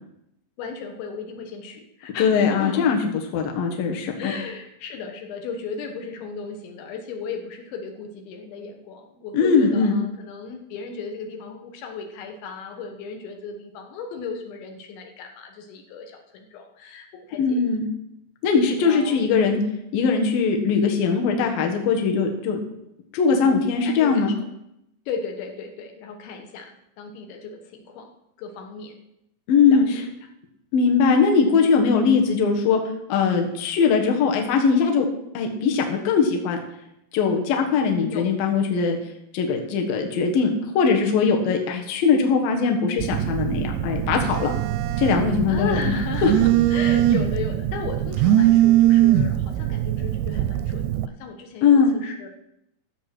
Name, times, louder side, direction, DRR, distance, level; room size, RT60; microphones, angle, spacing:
voice 1, 0.6-2.9 4.1-17.6 18.5-19.2 19.6-19.7 23.8-24.4 25.1-28.1 28.4-29.0 29.7-30.1 31.4-31.5 38.0-38.3 39.5-39.6 45.5-52.3, left 5 dB, 80° left, 4 dB, 3.5 m, -35 dB
voice 2, 2.2-3.0 3.3-4.3 9.3-9.9 17.4-17.9 18.4-19.6 19.9-22.6 23.1-24.3 29.5-30.0 30.7-32.8 33.1-35.1 35.3-36.6 37.1-39.0 39.3-44.5 45.0-45.9 46.2-46.3 51.6-51.9, left 5 dB, 60° left, 2 dB, 2.8 m, -20 dB
Telephone, 43.0-51.1, right 12 dB, 85° right, 2.8 m, -21 dB
14.0 x 7.6 x 6.1 m, 0.82 s
omnidirectional pair, 5.3 m